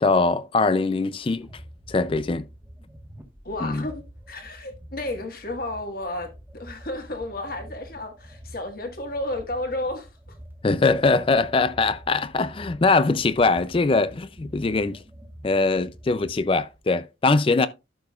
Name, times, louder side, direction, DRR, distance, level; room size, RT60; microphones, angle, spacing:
voice 1, 0.0-1.5 1.9-2.4 3.6-3.9 10.6-15.0 15.4-17.7, left 3 dB, 30° left, 0.4 m, -22 dB
sound 1, 1.2-16.8, equal, 10° right, 1.3 m, -46 dB
voice 2, 3.4-10.1, left 1 dB, 50° left, 1.5 m, -32 dB
12.0 x 6.8 x 2.3 m
head